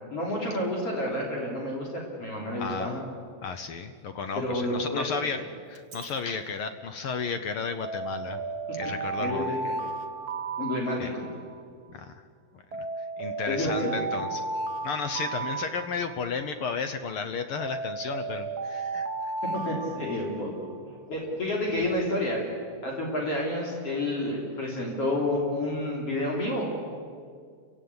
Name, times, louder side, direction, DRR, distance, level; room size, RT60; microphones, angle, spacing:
voice 1, 0.1-3.0 4.4-5.1 9.2-9.6 10.6-11.3 13.5-13.9 19.4-22.4 22.8-26.7, left 1 dB, 50° left, -2 dB, 4.1 m, -30 dB
voice 2, 2.6-2.9 3.4-5.4 5.7-8.4 8.7-9.5 11.0-11.1 11.9-12.1 12.7-12.8 13.2-14.4 14.8-19.1, left 5 dB, 70° left, 9 dB, 1.3 m, -33 dB
Alarm, 5.7-6.1 7.8-11.6 12.7-16.5 17.6-20.8, right 3 dB, 55° right, 1.1 m, -34 dB
28.0 x 16.5 x 9.6 m, 2.2 s
omnidirectional pair, 3.5 m